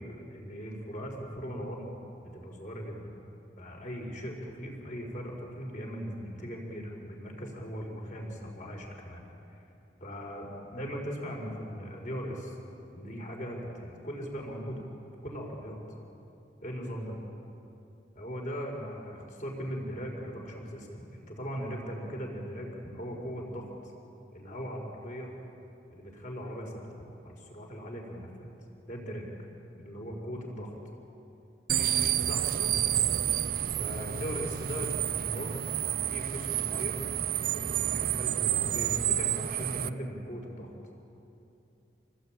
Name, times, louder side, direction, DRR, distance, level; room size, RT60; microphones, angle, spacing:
voice 1, 0.0-1.9 2.2-3.1 3.6-9.6 10.0-12.6 12.9-14.8 15.2-15.8 16.6-17.2 18.1-23.9 24.3-25.3 25.9-26.7 27.2-28.5 28.9-29.3 29.8-30.8 31.9-33.2 33.8-35.6 36.1-37.1 37.5-40.7, equal, 45° left, 0 dB, 5.0 m, -39 dB
sound 1, 31.7-39.9, right 11 dB, 55° right, 0.6 m, -29 dB
28.0 x 19.5 x 9.1 m, 2.8 s
head